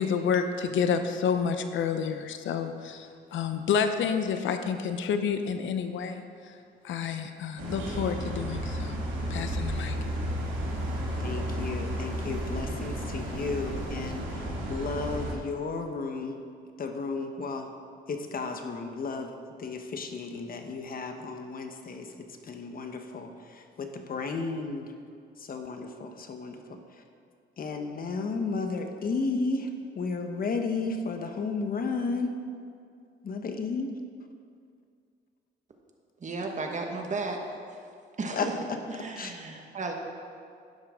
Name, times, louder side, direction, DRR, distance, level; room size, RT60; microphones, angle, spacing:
voice 1, 0.0-6.2 6.8-9.0 9.3-10.0, left 6 dB, 70° left, 8 dB, 0.8 m, -29 dB
sound 1, 7.6-15.3, equal, 85° right, 2.3 m, -33 dB
voice 2, 11.2-16.4 16.8-17.7 18.1-24.9 25.4-26.8 27.6-32.4 33.2-33.9 38.3-38.5 39.2-39.3, left 4 dB, 45° left, 5 dB, 1.1 m, -33 dB
voice 3, 36.2-37.8 38.2-38.5 38.9-39.9, right 3 dB, 35° right, 2 dB, 1.5 m, -34 dB
12.0 x 10.0 x 3.7 m, 2.3 s
cardioid pair, 90°, 20 cm